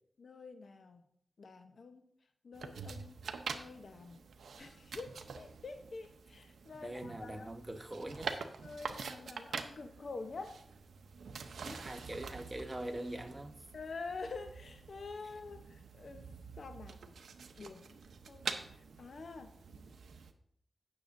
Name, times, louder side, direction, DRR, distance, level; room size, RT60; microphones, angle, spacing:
voice 1, 0.2-1.0 1.4-2.1 2.4-3.2 3.5-4.2 4.6-7.5 8.6-10.6 11.6-11.9 13.7-16.3 16.6-17.0 17.6-18.0 18.3-18.4 19.0-19.5, left 4 dB, 65° left, 8 dB, 0.8 m, -47 dB
sound 1, 2.5-20.3, right 5 dB, 90° right, 0.7 m, -46 dB
voice 2, 6.8-8.3 11.8-13.6, right 1 dB, 20° right, 5 dB, 1.2 m, -42 dB
16.0 x 6.8 x 2.6 m, 0.67 s
cardioid pair, 65°, 0 cm